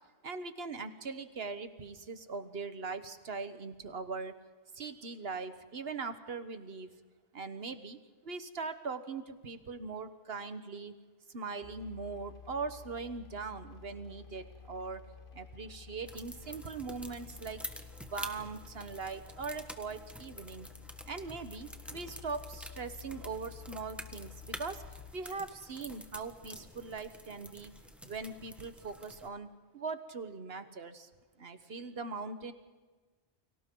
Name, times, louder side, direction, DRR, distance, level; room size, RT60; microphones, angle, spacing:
voice 1, 0.2-4.4 4.7-6.9 7.3-10.9 11.3-15.0 15.3-17.6 18.0-20.7 21.0-24.8 25.1-27.7 28.0-29.5 29.7-31.1 31.4-32.5, right 4 dB, 65° right, 10 dB, 1.6 m, -41 dB
sound 1, 11.6-25.1, left 7 dB, 55° left, 1.1 m, -52 dB
sound 2, 16.1-29.3, equal, ahead, 1.3 m, -48 dB
30.0 x 24.0 x 3.9 m, 1.3 s
omnidirectional pair, 1.1 m